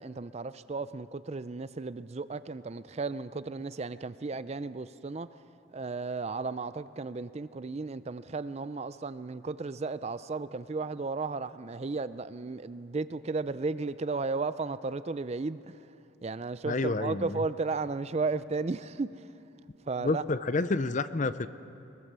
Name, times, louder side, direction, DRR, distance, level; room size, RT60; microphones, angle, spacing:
voice 1, 0.0-5.3 5.7-15.9 16.2-19.3 19.9-20.2, right 3 dB, 30° right, 0.4 m, -34 dB
voice 2, 16.7-17.4 20.0-21.5, left 3 dB, 35° left, 0.6 m, -29 dB
22.0 x 22.0 x 6.8 m
head